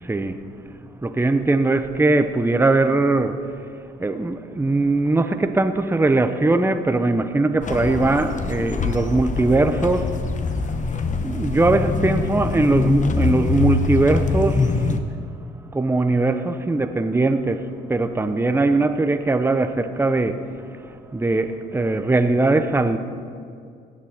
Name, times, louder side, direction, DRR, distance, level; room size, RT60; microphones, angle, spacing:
voice 1, 0.0-0.4 1.0-3.5 4.0-10.2 11.2-15.0 15.7-20.5 20.8-23.0, right 2 dB, 10° right, 0.7 m, -20 dB
sound 1, 7.6-15.0, left 4 dB, 40° left, 1.0 m, -24 dB
17.5 x 7.4 x 6.0 m
cardioid pair, 90°, 20 cm